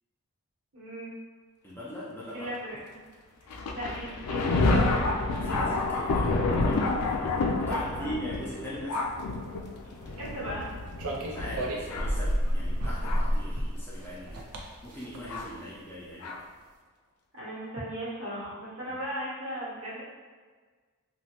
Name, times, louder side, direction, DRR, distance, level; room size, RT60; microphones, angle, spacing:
voice 1, 0.7-1.1 2.3-2.8 3.7-5.0 7.6-8.1 9.8-10.6 17.3-20.0, right 1 dB, 60° right, -8 dB, 1.1 m, -37 dB
voice 2, 1.6-2.3 5.3-9.1 11.3-14.5 14.8-16.5, equal, 10° left, -9 dB, 0.5 m, -41 dB
Thunder, 3.5-13.4 14.2-14.3 15.3-15.5 16.2-16.4, left 3 dB, 90° left, 0.4 m, -29 dB
sound 1, 10.1-10.7 11.0-15.7, equal, 85° right, 0.5 m, -31 dB
2.9 x 2.2 x 2.8 m, 1.5 s
head